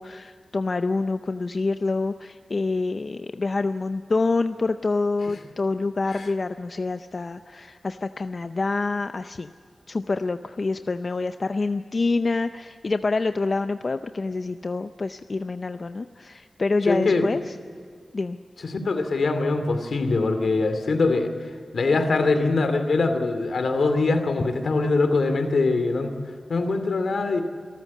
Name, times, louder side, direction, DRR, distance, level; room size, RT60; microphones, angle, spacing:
voice 1, 0.0-9.5 9.9-17.6 18.1-18.4, left 3 dB, 45° left, 9 dB, 0.6 m, -27 dB
voice 2, 16.9-17.2 18.6-21.3 21.7-26.1 26.5-27.4, left 3 dB, 80° left, 8 dB, 2.6 m, -22 dB
27.5 x 13.5 x 8.5 m, 2.2 s
wide cardioid pair, 105°, 0 cm